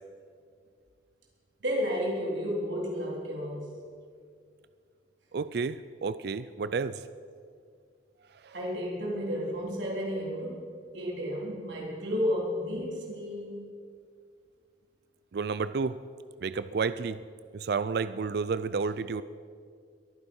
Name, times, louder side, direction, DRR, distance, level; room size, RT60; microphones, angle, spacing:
voice 1, 1.6-3.7 8.5-13.7, equal, 75° right, -4 dB, 3.7 m, -32 dB
voice 2, 5.3-7.0 15.3-16.0 16.4-17.2 17.5-19.2, right 5 dB, 55° right, 14 dB, 0.4 m, -31 dB
22.0 x 9.7 x 5.5 m, 2.1 s
head